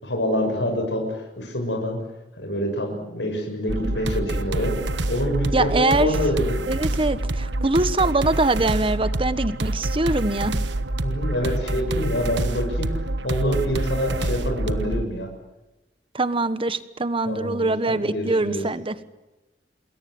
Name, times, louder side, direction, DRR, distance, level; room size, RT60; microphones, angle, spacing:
voice 1, 0.0-2.0 2.4-4.8 5.1-6.7 11.0-12.9 13.2-15.3 17.2-18.6, equal, 90° left, 2 dB, 6.6 m, -26 dB
sound 1, 3.7-15.0, right 2 dB, 90° right, 1.3 m, -26 dB
voice 2, 5.5-6.2 6.7-10.5 16.1-19.0, right 2 dB, 30° right, 13 dB, 1.3 m, -23 dB
27.5 x 21.5 x 7.8 m, 1.0 s
head